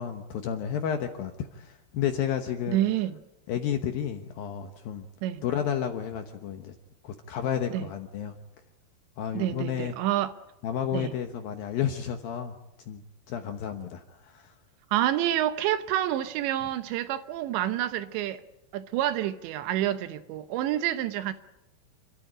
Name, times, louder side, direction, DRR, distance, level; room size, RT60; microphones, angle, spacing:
voice 1, 0.0-2.8 3.5-5.1 5.4-6.8 7.0-8.4 9.2-9.9 10.6-12.6 12.9-13.0 13.3-14.5, left 9 dB, 70° left, 2.4 m, -31 dB
voice 2, 2.7-3.2 5.2-5.4 7.7-7.9 9.3-10.3 10.9-11.1 14.9-18.4 18.7-21.3, right 12 dB, 75° right, 3.1 m, -28 dB
29.0 x 13.0 x 9.8 m
omnidirectional pair, 5.4 m